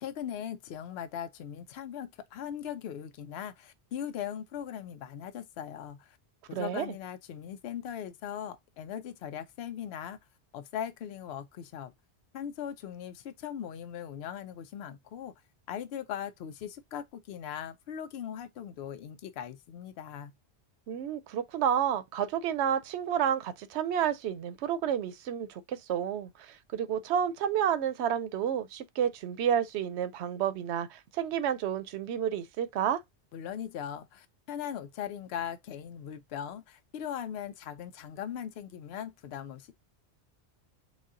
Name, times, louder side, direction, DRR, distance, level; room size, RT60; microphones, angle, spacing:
voice 1, 0.0-6.2 6.5-10.2 10.5-11.9 12.3-15.3 15.7-20.3 33.3-39.7, left 9 dB, 70° left, 0.8 m, -39 dB
voice 2, 6.5-6.9 20.9-33.0, right 9 dB, 75° right, 0.8 m, -30 dB
4.1 x 2.2 x 3.6 m
omnidirectional pair, 1.2 m